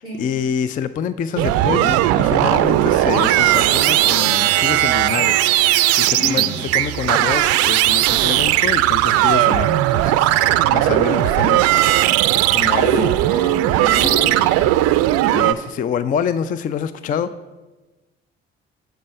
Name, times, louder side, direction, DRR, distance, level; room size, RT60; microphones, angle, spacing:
voice 1, 0.0-5.4 6.0-6.4 6.7-11.8 12.4-13.1 14.0-14.1 15.3-17.3, left 8 dB, 30° left, 14 dB, 0.4 m, -26 dB
sound 1, 1.4-15.5, right 14 dB, 55° right, 0.4 m, -17 dB
voice 2, 6.1-6.6 12.6-14.4, left 1 dB, 85° left, -6 dB, 2.6 m, -28 dB
7.3 x 4.4 x 5.3 m, 1.1 s
hypercardioid pair, 55°, 29 cm